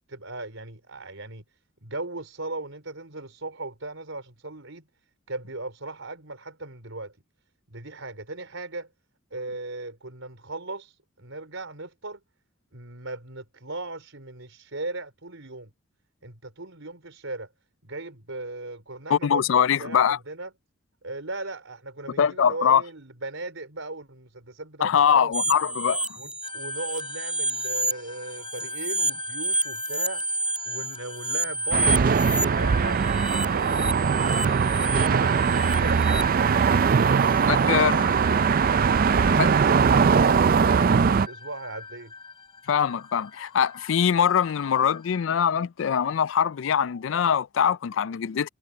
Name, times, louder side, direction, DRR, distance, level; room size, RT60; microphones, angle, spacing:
voice 1, 0.1-1.4 1.8-4.8 5.3-7.1 7.7-8.9 9.3-12.2 12.7-15.7 16.2-17.5 17.8-19.5 19.8-20.5 21.0-25.6 26.2-30.2 30.7-33.0 33.5-36.2 39.0-42.1, right 2 dB, 85° right, 4.4 m, -38 dB
voice 2, 19.1-20.2 22.2-22.8 24.8-26.0 37.5-38.1 39.4-39.5 42.7-48.5, left 8 dB, 70° left, 0.4 m, -23 dB
sound 1, 25.3-27.9 28.3-32.4 33.0-36.2, right 2 dB, 5° right, 4.6 m, -29 dB
sound 2, 26.4-45.2, left 4 dB, 25° left, 5.3 m, -42 dB
sound 3, 31.7-41.3, right 6 dB, 45° right, 0.4 m, -21 dB
head